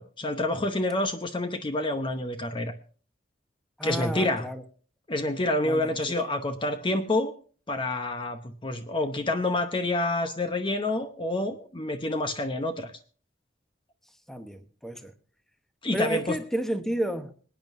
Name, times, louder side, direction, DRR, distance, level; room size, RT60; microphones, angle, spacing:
voice 1, 0.0-2.7 3.8-4.5 5.1-7.3 7.7-12.9 15.8-16.4, left 2 dB, 30° left, 0.8 m, -28 dB
voice 2, 3.8-4.6 5.6-6.3 14.3-15.1 15.9-17.4, right 1 dB, ahead, 1.0 m, -32 dB
26.0 x 9.2 x 2.6 m
head